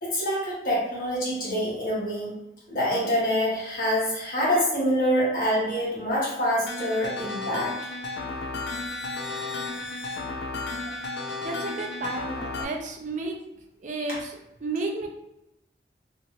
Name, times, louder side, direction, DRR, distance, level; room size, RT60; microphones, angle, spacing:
voice 1, 0.0-2.3 2.7-7.7, equal, 55° left, -7 dB, 1.4 m, -26 dB
sound 1, 6.7-12.6, left 3 dB, 70° left, 0.4 m, -33 dB
voice 2, 11.4-13.4 13.8-15.1, right 2 dB, 45° right, 2 dB, 0.4 m, -32 dB
2.8 x 2.5 x 2.9 m, 0.89 s
head